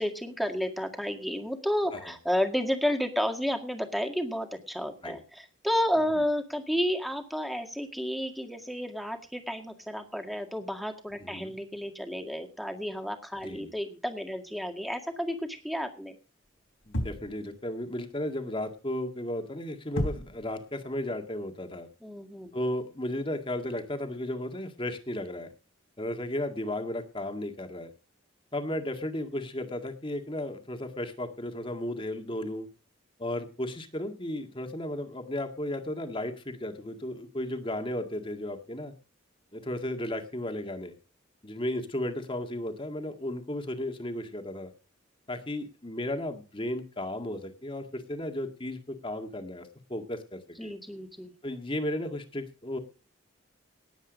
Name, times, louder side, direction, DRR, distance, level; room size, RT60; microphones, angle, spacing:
voice 1, 0.0-16.2 22.0-22.5 50.6-51.3, equal, ahead, 5 dB, 1.9 m, -31 dB
voice 2, 11.2-11.5 13.4-13.7 16.9-21.9 22.5-25.5 26.0-27.9 28.5-32.7 33.2-38.9 39.5-40.9 41.4-44.7 45.3-50.7 51.4-52.8, left 1 dB, 25° left, 6 dB, 1.9 m, -34 dB
sound 1, 16.9-17.4 20.0-20.5, equal, 85° left, 3.9 m, -32 dB
18.5 x 8.2 x 5.2 m, 0.35 s
head